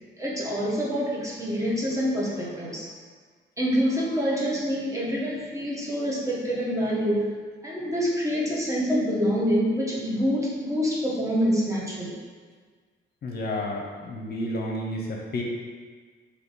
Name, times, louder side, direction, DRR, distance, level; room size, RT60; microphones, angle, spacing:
voice 1, 0.2-2.9 3.6-7.3 7.6-12.1, equal, 15° right, -5 dB, 1.0 m, -26 dB
voice 2, 13.2-15.4, left 1 dB, 50° left, -1 dB, 0.7 m, -31 dB
3.5 x 2.8 x 4.0 m, 1.5 s
cardioid pair, 90°, 20 cm